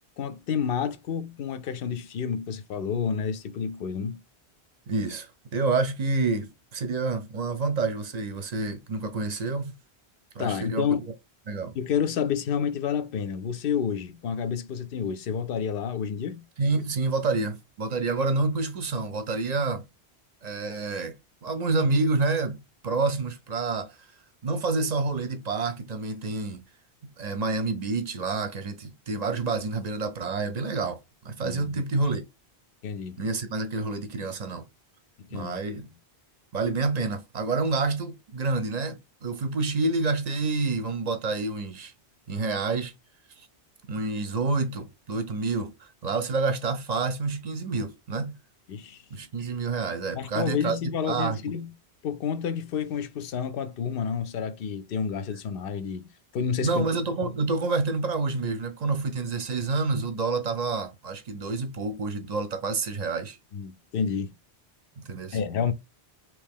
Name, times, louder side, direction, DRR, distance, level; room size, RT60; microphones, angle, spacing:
voice 1, 0.2-4.2 10.4-11.1 11.8-16.4 31.4-31.8 32.8-33.2 35.3-35.6 48.7-49.0 50.1-51.7 52.0-56.1 56.3-56.9 63.5-64.3 65.3-65.7, left 7 dB, 65° left, 0.7 m, -29 dB
voice 2, 4.9-9.7 10.3-10.9 11.5-11.8 16.6-19.8 20.4-21.2 21.4-23.9 24.4-26.6 27.2-31.0 31.2-32.3 33.2-34.7 35.3-35.9 36.5-41.9 42.3-42.9 43.4-43.5 43.9-48.4 49.1-50.8 51.0-51.4 56.6-63.4 65.0-65.4, right 3 dB, 45° right, 0.7 m, -28 dB
3.1 x 2.8 x 3.5 m
omnidirectional pair, 1.1 m